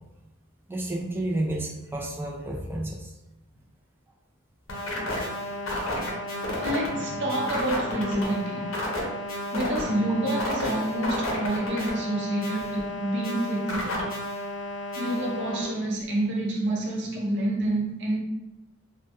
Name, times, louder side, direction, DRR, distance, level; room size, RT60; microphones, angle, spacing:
voice 1, 0.7-3.1, right 1 dB, 10° right, -1 dB, 0.3 m, -31 dB
sound 1, 4.7-15.6, left 1 dB, 75° left, 0.6 m, -32 dB
voice 2, 6.6-9.1 9.5-14.1 15.0-18.2, right 1 dB, 60° right, -2 dB, 0.6 m, -28 dB
2.2 x 2.1 x 2.8 m, 0.95 s
head